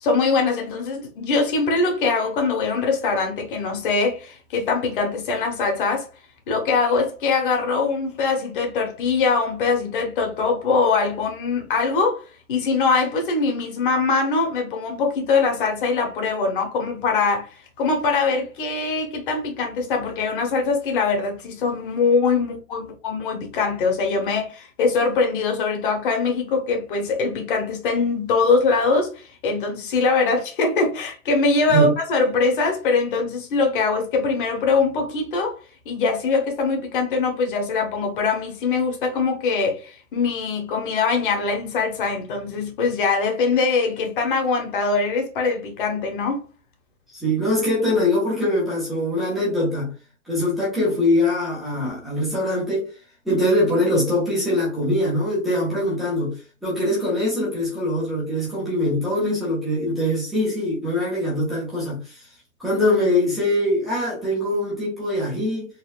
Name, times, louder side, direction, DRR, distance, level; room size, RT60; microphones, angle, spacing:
voice 1, 0.0-6.1 6.5-12.2 12.5-17.5 17.8-35.6 35.8-46.4, left 4 dB, 40° left, 1.1 m, -22 dB
voice 2, 47.1-49.9 50.3-52.9 53.2-62.2 62.6-65.7, left 1 dB, ahead, 0.5 m, -22 dB
4.0 x 2.4 x 2.4 m
hypercardioid pair, 145°, 42 cm